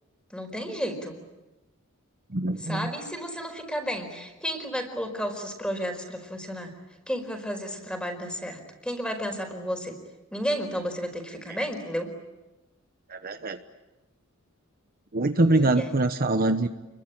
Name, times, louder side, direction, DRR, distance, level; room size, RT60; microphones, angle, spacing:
voice 1, 0.3-1.1 2.6-6.8 7.1-10.0 10.3-12.1 15.4-15.9, equal, 5° left, 6 dB, 4.7 m, -32 dB
voice 2, 2.3-2.9 13.1-13.6 15.1-16.7, right 2 dB, 45° right, 8 dB, 1.0 m, -24 dB
29.0 x 22.5 x 8.8 m, 1.1 s
head